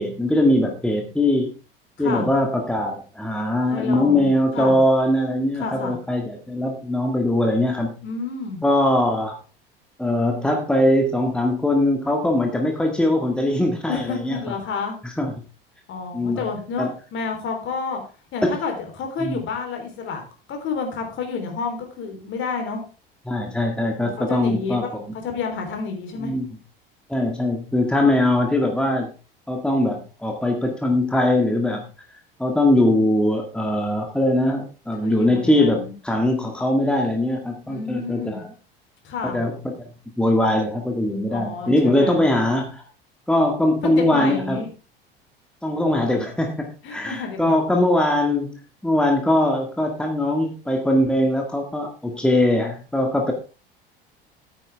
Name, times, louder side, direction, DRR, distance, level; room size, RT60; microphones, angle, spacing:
voice 1, 0.0-1.5 2.0-8.0 8.6-9.4 10.0-14.4 15.0-15.3 16.1-16.5 16.8-16.9 18.4-18.5 19.2-19.4 23.3-25.0 26.2-26.5 27.1-29.1 29.5-31.8 32.4-38.5 39.2-39.9 40.2-42.8 43.3-44.6 45.6-48.6 48.8-53.3, left 1 dB, 5° left, 2 dB, 2.0 m, -21 dB
voice 2, 2.0-2.3 3.7-4.8 5.6-6.0 8.0-8.6 13.9-15.0 15.9-18.0 18.3-20.2 20.5-22.8 24.0-24.9 25.2-26.4 35.0-35.9 37.7-38.4 39.0-39.4 41.3-42.2 43.8-44.7 46.8-47.6, left 5 dB, 40° left, 4 dB, 3.8 m, -30 dB
13.5 x 9.4 x 3.5 m, 0.34 s
figure-of-eight pair, 70°, 29 cm